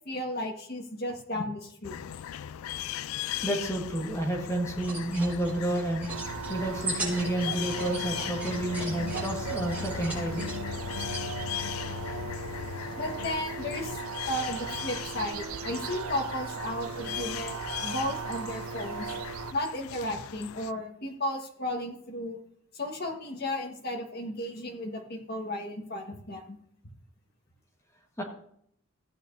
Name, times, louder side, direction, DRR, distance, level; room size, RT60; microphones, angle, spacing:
voice 1, 0.0-2.0 13.0-14.0 14.2-19.1 19.5-22.4 22.7-26.6, left 1 dB, 50° left, 2 dB, 1.6 m, -34 dB
sound 1, 1.8-20.7, left 10 dB, 85° left, 0.3 m, -38 dB
voice 2, 3.4-6.1 6.5-10.5 28.2-28.3, right 1 dB, 15° left, -1 dB, 1.5 m, -30 dB
sound 2, 4.8-11.2, right 2 dB, 10° right, 4.5 m, -39 dB
sound 3, 6.1-19.5, right 5 dB, 85° right, 0.5 m, -38 dB
15.5 x 8.7 x 2.7 m, 0.69 s
head